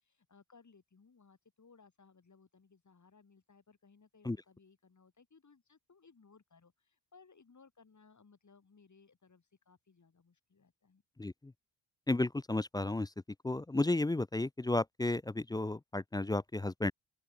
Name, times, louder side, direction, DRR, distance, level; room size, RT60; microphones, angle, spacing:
voice 1, 0.0-11.0, left 5 dB, 40° left, 6.6 m, -63 dB
voice 2, 11.2-11.5 12.1-13.1 13.4-16.9, left 2 dB, 10° left, 0.4 m, -33 dB
open air
cardioid pair, 70°, 45 cm